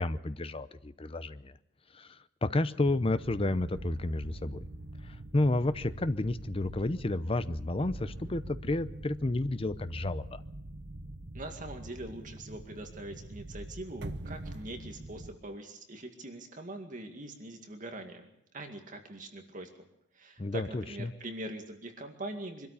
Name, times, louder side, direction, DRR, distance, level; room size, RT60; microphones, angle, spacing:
voice 1, 0.0-1.5 2.0-2.1 2.4-4.6 5.3-10.4 20.4-21.1, left 2 dB, 30° left, 13 dB, 0.7 m, -31 dB
sound 1, 2.9-15.3, right 1 dB, 60° right, 1.0 m, -44 dB
voice 2, 11.3-18.3 18.5-19.9 20.1-22.7, right 1 dB, 45° right, 4 dB, 2.2 m, -43 dB
24.0 x 13.0 x 8.4 m, 0.80 s
head